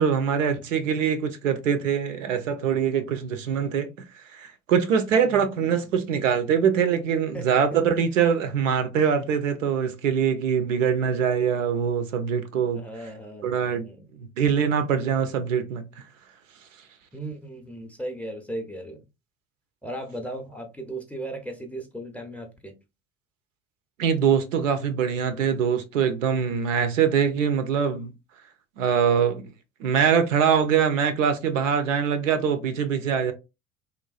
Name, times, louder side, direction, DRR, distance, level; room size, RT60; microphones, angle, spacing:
voice 1, 0.0-3.9 4.3-12.8 13.4-13.9 14.1-15.8 24.0-28.1 28.8-29.5 29.8-33.3, right 7 dB, 75° right, 0.6 m, -23 dB
voice 2, 5.2-5.8 7.3-8.0 12.7-14.1 17.1-19.0 19.8-22.8, right 1 dB, 5° left, 0.5 m, -37 dB
3.1 x 2.2 x 2.3 m
figure-of-eight pair, 60°, 38 cm